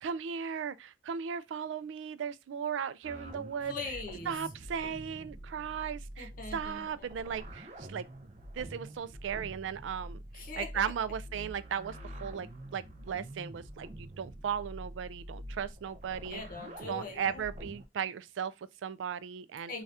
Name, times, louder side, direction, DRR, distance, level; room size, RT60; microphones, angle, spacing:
voice 1, 0.0-3.7 4.3-8.1 8.6-16.4 16.9-19.7, right 7 dB, 85° right, 0.3 m, -37 dB
sound 1, 3.0-17.8, right 1 dB, 40° right, 0.5 m, -46 dB
voice 2, 3.7-4.4 6.2-7.1 10.3-10.7 16.2-17.5 19.7-19.8, left 3 dB, 50° left, 0.7 m, -41 dB
2.7 x 2.3 x 3.3 m
head